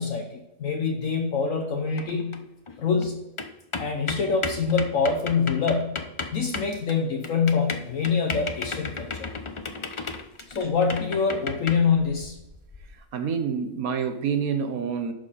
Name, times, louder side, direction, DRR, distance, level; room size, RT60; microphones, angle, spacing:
voice 1, 0.0-2.4 2.8-3.2 3.8-6.0 6.3-9.3 10.5-12.4, left 5 dB, 65° left, 2 dB, 1.3 m, -25 dB
sound 1, 2.0-2.4 2.7-2.8 3.0-3.5 3.7-13.0, left 4 dB, 35° left, 0.5 m, -34 dB
voice 2, 13.1-15.1, right 6 dB, 70° right, 9 dB, 1.4 m, -27 dB
11.5 x 6.6 x 4.1 m, 0.97 s
omnidirectional pair, 1.6 m